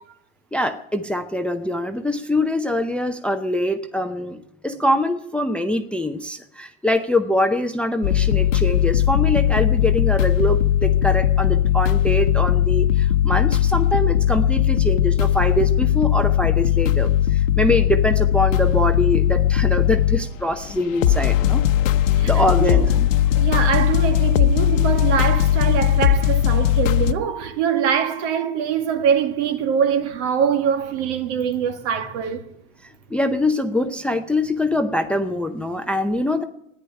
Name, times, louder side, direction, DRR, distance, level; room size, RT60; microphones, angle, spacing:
voice 1, 0.5-21.6 22.2-23.1 32.8-36.4, left 1 dB, 5° left, 0.6 m, -23 dB
sound 1, 8.0-27.1, left 11 dB, 80° left, 1.0 m, -19 dB
voice 2, 23.3-32.4, right 8 dB, 65° right, 2.0 m, -23 dB
13.5 x 10.0 x 9.7 m
supercardioid pair, 125°, 39 cm